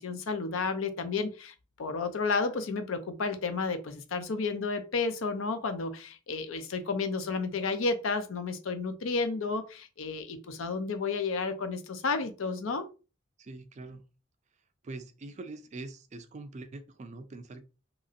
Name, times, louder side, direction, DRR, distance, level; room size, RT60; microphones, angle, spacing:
voice 1, 0.0-12.9, left 4 dB, 70° left, 0.5 m, -32 dB
voice 2, 13.4-14.0 14.8-17.6, right 2 dB, 35° right, 0.3 m, -43 dB
2.9 x 2.6 x 2.5 m
head